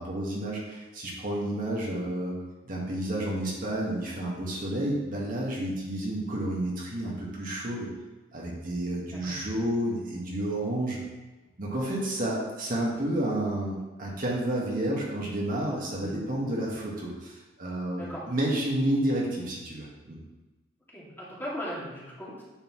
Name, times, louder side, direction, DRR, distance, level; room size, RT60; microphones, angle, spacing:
voice 1, 0.0-2.3 2.7-7.9 8.3-11.0 11.6-20.2, right 1 dB, 50° right, -4 dB, 1.6 m, -30 dB
voice 2, 20.9-22.4, equal, 10° left, -8 dB, 2.3 m, -38 dB
9.3 x 6.7 x 3.1 m, 1.1 s
head